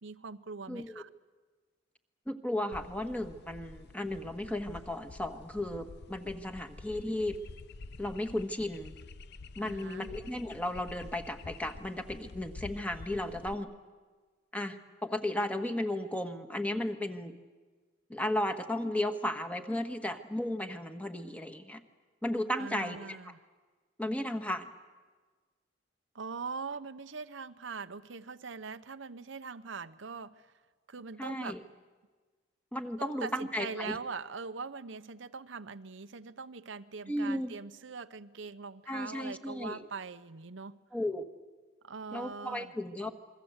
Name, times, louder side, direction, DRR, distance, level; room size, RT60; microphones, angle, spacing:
voice 1, 0.0-1.1 9.6-10.2 22.6-23.4 26.1-30.5 30.9-31.6 33.0-40.8 41.8-42.7, right 4 dB, 70° right, 11 dB, 0.8 m, -42 dB
voice 2, 0.7-1.0 2.3-7.4 8.0-8.9 9.6-13.7 14.5-17.4 18.1-21.8 22.2-23.3 24.0-24.7 31.2-31.6 32.7-34.0 37.1-37.5 38.9-39.8 40.9-41.3 42.1-43.1, left 1 dB, 10° left, 6 dB, 1.5 m, -34 dB
sound 1, 2.7-13.5, left 3 dB, 60° left, 0.7 m, -49 dB
28.5 x 22.5 x 8.1 m, 1.4 s
head